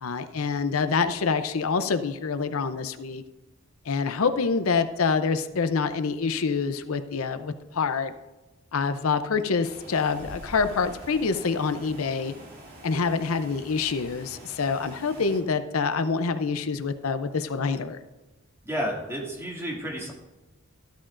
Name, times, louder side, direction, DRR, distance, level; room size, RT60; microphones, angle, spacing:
voice 1, 0.0-3.2 3.9-8.1 8.7-12.3 12.8-18.0, left 5 dB, 75° left, 10 dB, 0.6 m, -26 dB
sound 1, 9.6-15.4, right 1 dB, 45° right, 2.8 m, -45 dB
voice 2, 18.6-20.1, equal, 10° right, -2 dB, 2.3 m, -31 dB
13.5 x 12.5 x 2.5 m, 1.1 s
head